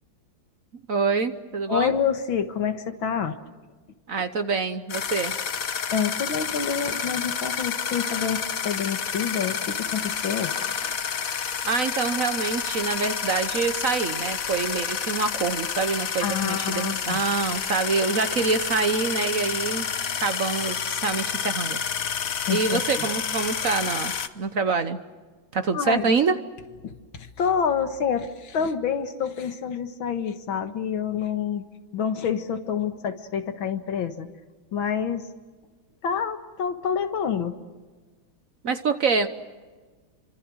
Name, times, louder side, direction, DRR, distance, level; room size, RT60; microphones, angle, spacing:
voice 1, 0.9-1.9 4.1-5.3 11.6-19.9 20.2-21.8 22.5-25.0 25.5-26.4 38.6-39.3, right 4 dB, 50° right, 10 dB, 1.2 m, -26 dB
voice 2, 1.7-3.4 5.9-10.5 10.8-11.0 16.2-17.2 22.5-22.8 25.7-26.1 26.8-31.6 31.9-34.3 34.7-35.3 36.0-37.5, left 7 dB, 75° left, 8 dB, 2.3 m, -27 dB
sound 1, 4.9-24.3, left 7 dB, 50° left, 1.3 m, -29 dB
30.0 x 25.5 x 6.3 m, 1.4 s
omnidirectional pair, 2.2 m